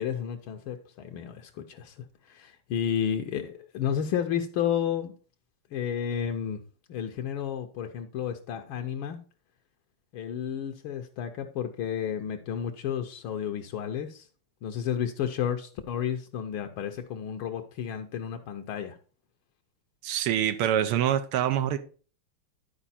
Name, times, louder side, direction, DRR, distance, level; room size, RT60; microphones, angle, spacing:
voice 1, 0.0-5.1 5.7-6.6 6.9-9.2 10.1-14.3 14.6-19.0, left 9 dB, 75° left, 1.5 m, -32 dB
voice 2, 20.0-21.8, right 10 dB, 90° right, 1.7 m, -25 dB
11.5 x 4.8 x 4.2 m
omnidirectional pair, 2.4 m